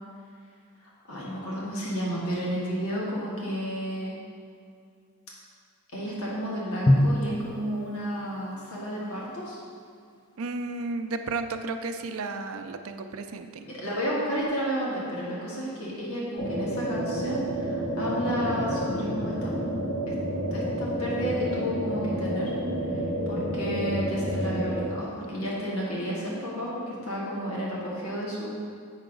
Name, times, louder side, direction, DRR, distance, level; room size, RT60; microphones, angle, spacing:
voice 1, 0.8-4.1 5.9-9.6 13.6-19.5 20.1-20.2 20.5-22.5 23.3-28.5, equal, 75° left, -6 dB, 1.7 m, -32 dB
Drum, 6.9-9.0, left 1 dB, 20° left, 0.4 m, -26 dB
voice 2, 10.4-13.7, right 3 dB, 65° right, 7 dB, 0.5 m, -33 dB
sound 1, 16.4-24.8, equal, 50° left, 1.5 m, -29 dB
8.1 x 5.8 x 3.8 m, 2.2 s
head